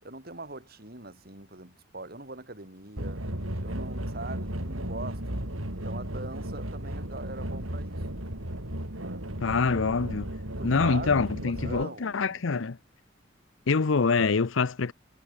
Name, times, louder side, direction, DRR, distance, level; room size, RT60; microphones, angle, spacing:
voice 1, 0.0-3.3 3.6-8.1 9.0-9.3 10.6-12.2 12.5-12.6, right 2 dB, 50° right, 4.3 m, -42 dB
sound 1, 3.0-11.8, right 1 dB, 90° right, 6.2 m, -35 dB
voice 2, 9.4-10.3 10.6-12.8 13.7-14.9, left 4 dB, 75° left, 0.7 m, -25 dB
head